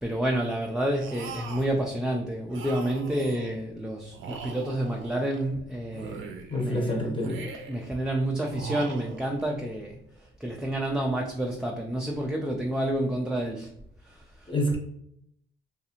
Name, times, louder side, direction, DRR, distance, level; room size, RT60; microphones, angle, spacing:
voice 1, 0.0-7.1 7.7-13.7 14.0-14.5, right 1 dB, 5° right, 0 dB, 0.3 m, -29 dB
sound 1, 1.0-1.8 2.5-3.6 4.1-5.5 5.9-6.7 7.2-7.9 8.4-9.5, right 6 dB, 80° right, 0.5 m, -41 dB
voice 2, 6.5-7.4 14.5-14.8, left 1 dB, 25° left, -1 dB, 0.8 m, -27 dB
2.5 x 2.4 x 2.8 m, 0.71 s
cardioid pair, 90°, 20 cm